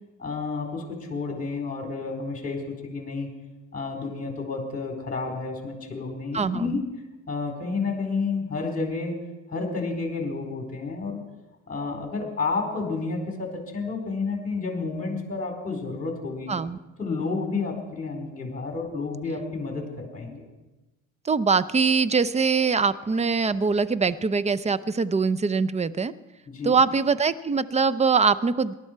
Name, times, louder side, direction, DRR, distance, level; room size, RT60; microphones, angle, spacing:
voice 1, 0.2-3.3 3.7-6.8 7.3-9.2 9.5-11.2 11.7-16.5 17.0-20.5 26.5-26.8, left 4 dB, 25° left, 2 dB, 4.2 m, -30 dB
voice 2, 6.3-6.8 16.5-16.8 21.2-26.1 26.6-28.7, right 5 dB, 20° right, 17 dB, 0.5 m, -23 dB
18.5 x 12.0 x 4.6 m, 1.1 s
supercardioid pair, 90°, 36 cm